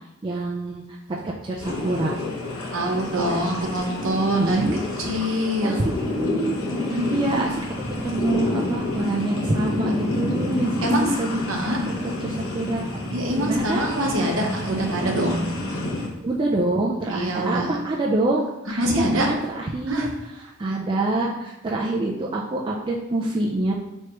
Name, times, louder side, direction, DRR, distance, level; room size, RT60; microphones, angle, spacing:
voice 1, 0.2-0.8 1.1-2.1 4.4-4.8 5.3-6.6 7.1-7.6 8.0-12.8 13.3-13.8 16.2-20.1 20.4-23.7, right 2 dB, 25° right, -3 dB, 0.3 m, -26 dB
sound 1, 1.6-16.1, left 2 dB, 75° left, 1.0 m, -29 dB
voice 2, 2.7-4.7 5.0-5.8 6.9-7.6 10.8-11.1 11.5-11.9 13.1-15.5 17.1-17.8 18.8-19.3 19.9-20.1, right 1 dB, 65° right, 1 dB, 0.8 m, -24 dB
4.6 x 3.2 x 2.9 m, 0.93 s
head